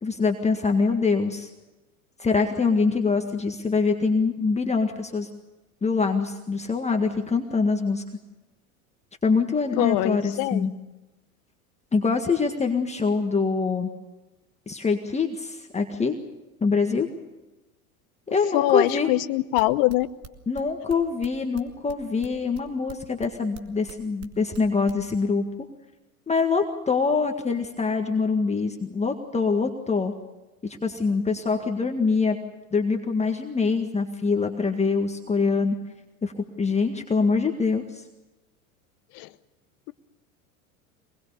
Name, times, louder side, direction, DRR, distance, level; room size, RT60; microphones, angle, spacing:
voice 1, 0.0-1.5 2.2-5.3 5.8-8.0 9.2-10.7 11.9-13.9 14.7-16.2 16.6-17.1 18.3-19.1 20.5-25.4 26.3-30.1 30.6-32.4 32.7-35.7 36.2-38.0, left 4 dB, 15° left, 4 dB, 1.8 m, -24 dB
voice 2, 9.8-10.7 18.5-20.1 39.1-39.3, left 18 dB, 50° left, 14 dB, 1.0 m, -23 dB
sound 1, 19.6-25.0, right 8 dB, 40° right, 2.3 m, -42 dB
24.5 x 21.0 x 6.9 m, 1.0 s
hypercardioid pair, 90°, 43 cm